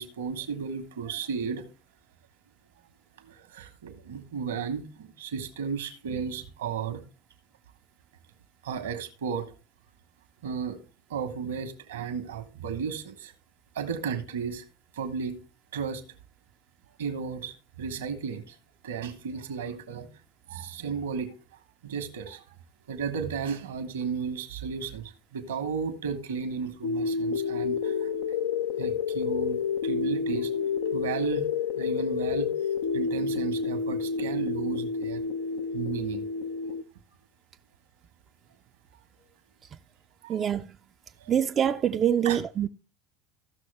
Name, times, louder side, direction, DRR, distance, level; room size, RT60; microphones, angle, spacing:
voice 1, 0.0-1.7 3.2-7.0 8.6-9.5 10.4-10.8 11.1-13.3 13.7-14.6 14.9-15.4 15.7-16.0 17.0-18.5 18.8-20.1 20.5-21.3 21.8-22.4 22.9-28.1 28.8-30.5 30.9-31.5 31.7-32.5 32.9-35.3 35.7-36.2 39.2-39.3 40.2-40.4 41.2-41.3 42.2-42.4, right 6 dB, 80° right, 1.3 m, -34 dB
sound 1, 26.8-36.8, left 6 dB, 70° left, 0.6 m, -29 dB
voice 2, 40.3-40.7 41.3-42.7, right 9 dB, 40° right, 0.4 m, -25 dB
14.5 x 6.3 x 3.4 m
hypercardioid pair, 75°, 0 cm